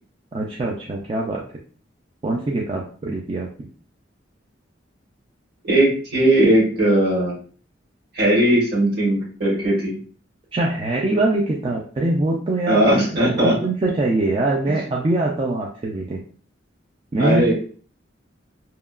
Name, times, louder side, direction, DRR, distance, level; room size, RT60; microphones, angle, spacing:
voice 1, 0.3-1.4 2.2-3.7 10.5-12.8 13.4-16.2 17.1-17.5, right 2 dB, 30° right, -3 dB, 0.4 m, -23 dB
voice 2, 5.6-7.3 8.1-10.0 12.7-13.5 14.7-14.8 17.2-17.5, right 1 dB, 55° right, -4 dB, 1.3 m, -18 dB
2.8 x 2.3 x 2.3 m, 0.42 s
head